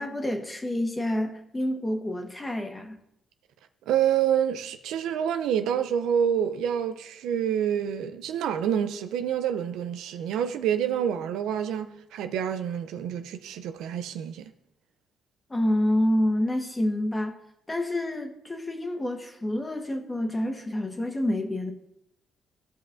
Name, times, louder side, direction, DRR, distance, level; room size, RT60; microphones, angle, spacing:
voice 1, 0.0-3.0 15.5-17.4 17.7-21.7, left 1 dB, 20° left, 1.4 m, -28 dB
voice 2, 3.9-14.5, right 9 dB, 85° right, 0.5 m, -27 dB
15.5 x 5.4 x 2.6 m
cardioid pair, 90°, 0 cm